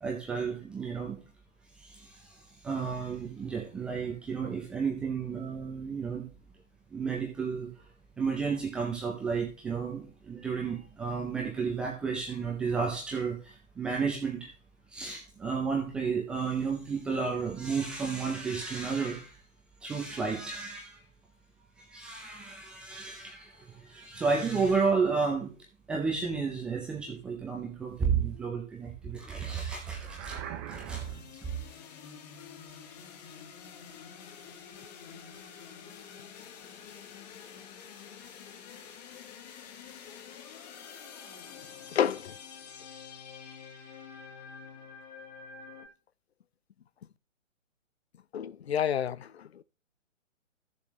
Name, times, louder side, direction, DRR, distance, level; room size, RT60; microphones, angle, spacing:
voice 1, 0.0-1.2 1.8-2.4 2.6-6.3 6.9-7.7 8.2-14.5 14.9-19.4 19.8-21.0 21.8-25.6 25.9-30.4 30.7-31.0 31.4-31.5, right 5 dB, 5° right, 0.5 m, -32 dB
sound 1, 29.8-31.4, right 9 dB, 20° right, 1.1 m, -43 dB
sound 2, 30.9-45.9, left 7 dB, 30° left, 1.9 m, -48 dB
voice 2, 41.9-42.3 48.3-49.3, left 9 dB, 55° left, 0.7 m, -29 dB
14.0 x 7.2 x 3.1 m
figure-of-eight pair, 135°, 39 cm